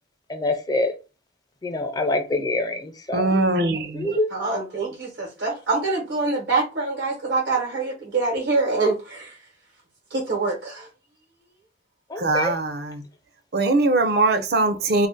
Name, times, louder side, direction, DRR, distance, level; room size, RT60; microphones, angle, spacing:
voice 1, 0.3-0.9 1.6-3.3 3.9-4.3 12.1-12.6, left 2 dB, 20° left, 0.4 m, -25 dB
voice 2, 3.1-4.2 12.2-13.0 13.5-15.1, right 2 dB, 60° right, 0.5 m, -21 dB
voice 3, 4.3-9.4 10.1-10.9, right 3 dB, 85° right, 1.0 m, -25 dB
2.5 x 2.1 x 3.7 m
head